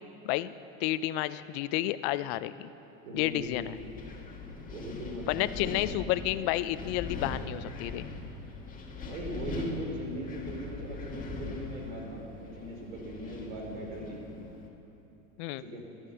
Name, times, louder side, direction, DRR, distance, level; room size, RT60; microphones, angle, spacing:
voice 1, 0.8-2.7 3.1-3.8 5.3-8.1 15.4-15.6, left 15 dB, 55° left, 15 dB, 0.6 m, -31 dB
voice 2, 3.0-3.7 4.7-6.1 9.0-14.3 15.6-15.9, equal, 75° right, 0 dB, 4.1 m, -39 dB
Wind, 3.2-14.7, left 3 dB, 20° left, 1.9 m, -41 dB
14.0 x 12.0 x 6.9 m, 2.9 s
supercardioid pair, 120°, 40 cm